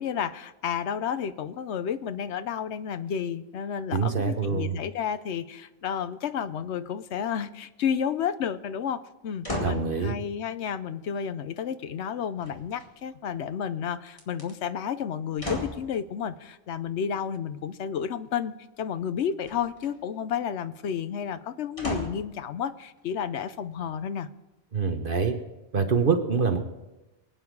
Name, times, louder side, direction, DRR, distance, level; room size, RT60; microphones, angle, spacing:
voice 1, 0.0-24.3, left 8 dB, 75° left, 13 dB, 1.0 m, -31 dB
voice 2, 3.9-4.7 9.6-10.1 24.7-25.3 25.7-26.6, right 5 dB, 50° right, 7 dB, 1.2 m, -25 dB
sound 1, 9.4-9.9 12.4-13.1 14.1-14.5 15.4-15.9 19.4-19.9 21.8-22.3 23.0-23.1, left 1 dB, 30° left, 2.3 m, -34 dB
24.0 x 9.2 x 4.7 m, 1.0 s
omnidirectional pair, 1.2 m